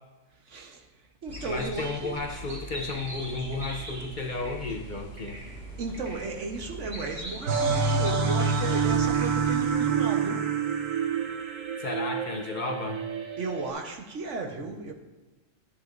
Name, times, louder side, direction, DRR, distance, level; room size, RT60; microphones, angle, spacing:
voice 1, 0.5-0.9 1.2-2.1 5.8-10.5 13.4-14.9, right 3 dB, 70° right, 1.4 m, -35 dB
sound 1, 1.3-9.7, right 2 dB, 50° right, 2.3 m, -40 dB
voice 2, 1.4-5.4 11.8-13.0, left 3 dB, 45° left, 0.8 m, -33 dB
sound 2, 7.5-13.7, right 5 dB, 85° right, 1.3 m, -27 dB
13.5 x 8.3 x 2.6 m
omnidirectional pair, 1.3 m